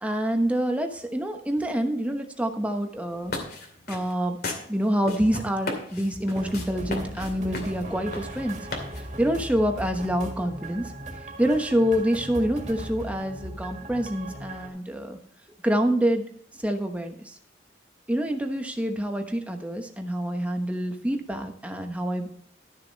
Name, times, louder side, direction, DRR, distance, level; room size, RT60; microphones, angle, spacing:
voice 1, 0.0-3.3 3.9-4.4 4.7-8.7 9.2-10.9 11.4-15.2 15.6-16.2 16.6-17.3 18.1-22.3, equal, 10° right, 4 dB, 1.0 m, -26 dB
sound 1, 3.1-9.3, left 2 dB, 55° left, 2.5 m, -36 dB
sound 2, 6.3-14.7, right 1 dB, 40° right, 2.1 m, -38 dB
13.0 x 6.7 x 4.1 m, 0.64 s
head